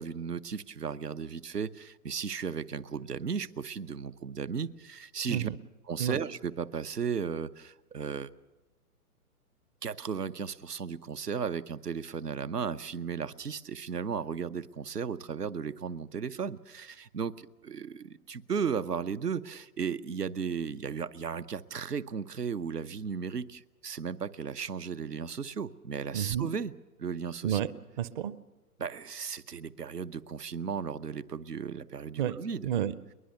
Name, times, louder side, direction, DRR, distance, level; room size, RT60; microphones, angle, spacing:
voice 1, 0.0-5.5 5.9-8.3 9.8-26.7 27.0-27.6 28.8-32.7, right 6 dB, 85° right, 12 dB, 0.9 m, -35 dB
voice 2, 26.1-26.5 27.4-27.7 28.0-28.3 32.2-33.1, right 10 dB, 35° right, 17 dB, 0.6 m, -31 dB
22.5 x 20.0 x 6.7 m, 1.1 s
figure-of-eight pair, 125°, 46 cm